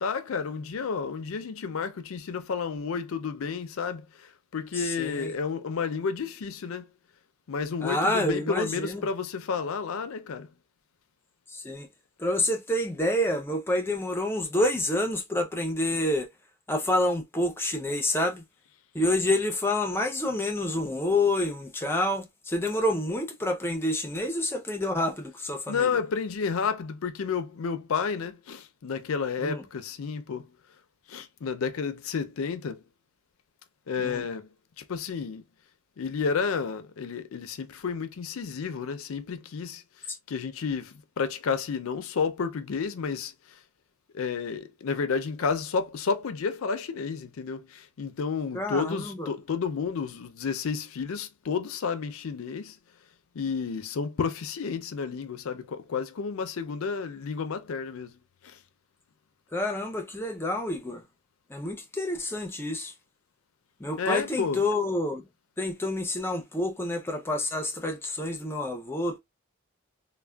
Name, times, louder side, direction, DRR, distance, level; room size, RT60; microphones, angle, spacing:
voice 1, 0.0-6.9 7.5-10.5 25.7-30.5 31.1-32.8 33.9-34.5 34.8-35.4 36.0-43.3 44.1-52.8 53.3-58.1 58.4-58.6 64.0-64.6, left 5 dB, 70° left, 0.4 m, -31 dB
voice 2, 4.7-5.3 7.8-9.1 11.5-11.9 12.2-16.3 16.7-18.4 18.9-26.0 29.4-29.6 34.0-34.2 48.5-49.3 59.5-61.0 61.5-62.9 63.8-65.3 65.6-69.2, left 1 dB, 10° left, 0.4 m, -28 dB
3.3 x 2.1 x 2.2 m
head